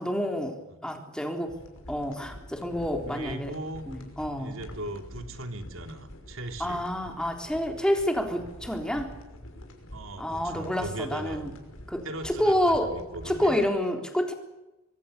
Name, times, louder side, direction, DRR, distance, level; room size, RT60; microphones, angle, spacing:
voice 1, 0.0-1.6 1.9-3.6 3.9-4.6 6.6-9.2 10.2-11.5 11.9-12.9 13.3-14.3, equal, 5° left, 3 dB, 3.7 m, -28 dB
sound 1, 1.5-13.7, equal, 70° left, 5.8 m, -46 dB
voice 2, 3.1-3.8 4.4-6.8 9.9-11.4 12.0-13.6, right 1 dB, 70° right, 6 dB, 3.2 m, -38 dB
24.5 x 24.5 x 6.9 m, 0.99 s
head